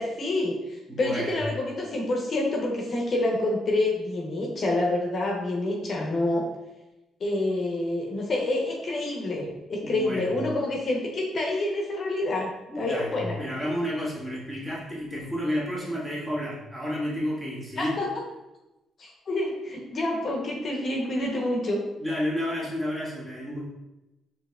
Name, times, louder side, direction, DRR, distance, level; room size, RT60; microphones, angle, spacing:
voice 1, 0.0-6.4 7.2-12.5 12.8-13.4 17.8-18.1 19.0-21.8, left 2 dB, 45° left, -1 dB, 0.7 m, -27 dB
voice 2, 0.9-1.4 9.8-10.4 12.7-18.0 22.0-23.6, equal, 20° right, -6 dB, 1.4 m, -31 dB
4.5 x 2.8 x 2.3 m, 1.0 s
cardioid pair, 90°, 0 cm